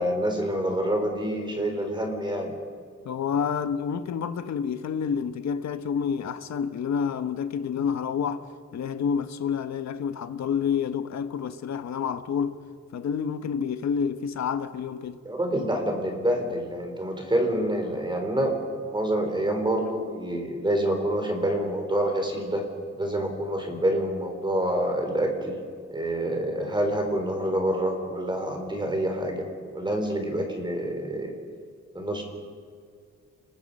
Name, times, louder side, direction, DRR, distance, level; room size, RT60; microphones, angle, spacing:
voice 1, 0.0-2.5 15.2-18.5 18.8-22.6 23.0-25.5 25.9-29.4 29.7-31.4 31.9-32.2, right 1 dB, 15° right, 4.2 m, -27 dB
voice 2, 3.0-8.5 8.7-12.6 12.9-15.2, left 7 dB, 65° left, 1.3 m, -28 dB
30.0 x 20.5 x 5.5 m
wide cardioid pair, 155°, 29 cm